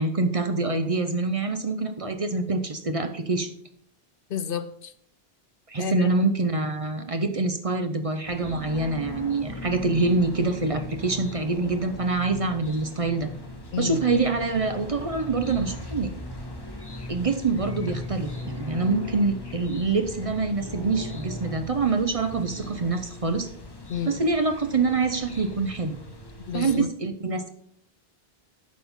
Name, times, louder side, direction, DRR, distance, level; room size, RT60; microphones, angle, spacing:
voice 1, 0.0-3.5 5.7-13.3 13.8-16.1 17.1-23.5 24.0-26.0 26.5-27.5, right 3 dB, 40° right, 8 dB, 0.7 m, -25 dB
voice 2, 4.3-4.9 5.8-6.1 13.7-14.0 23.9-24.2 26.5-26.9, left 7 dB, 65° left, 11 dB, 0.7 m, -30 dB
sound 1, 8.2-26.8, left 1 dB, 25° left, 1.0 m, -38 dB
Bus, 15.0-20.0, left 3 dB, 65° right, 2.0 m, -49 dB
11.5 x 4.3 x 5.4 m, 0.66 s
omnidirectional pair, 1.0 m